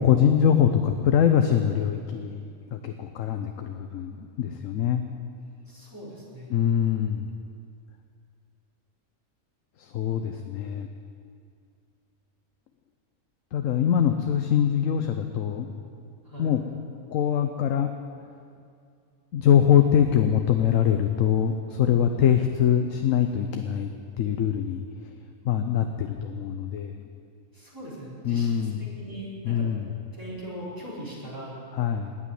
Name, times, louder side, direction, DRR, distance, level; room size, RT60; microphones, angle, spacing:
voice 1, 0.0-5.1 6.5-7.3 9.8-10.9 13.5-15.7 16.4-16.6 17.1-17.9 19.3-23.9 24.2-24.8 25.4-27.0 28.2-28.9 29.4-29.9 31.7-32.1, left 9 dB, 70° left, 6 dB, 1.1 m, -23 dB
voice 2, 5.7-6.5 16.2-16.5 22.2-22.3 27.5-29.7 30.1-31.6, equal, 15° right, -7 dB, 4.1 m, -40 dB
18.0 x 6.3 x 9.9 m, 2.4 s
omnidirectional pair, 1.4 m